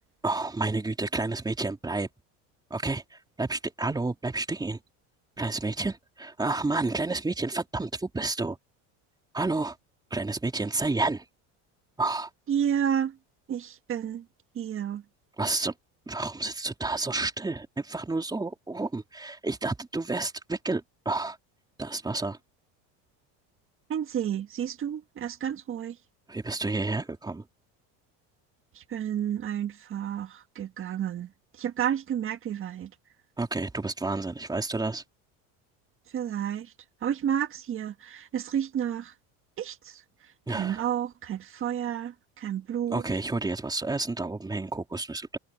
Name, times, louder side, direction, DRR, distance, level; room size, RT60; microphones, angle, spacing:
voice 1, 0.2-2.1 2.7-4.8 5.4-8.6 9.3-9.8 10.1-11.2 12.0-12.3 15.4-15.7 16.1-21.4 21.8-22.4 26.3-27.5 33.4-35.0 40.5-40.8 42.9-45.4, right 3 dB, 10° right, 3.7 m, -30 dB
voice 2, 12.5-13.2 13.5-14.2 14.5-15.0 23.9-26.0 28.7-31.3 31.6-32.9 36.1-36.7 37.0-39.1 39.6-40.0 40.5-43.0, right 9 dB, 35° right, 1.5 m, -30 dB
cardioid pair, 130°, 37 cm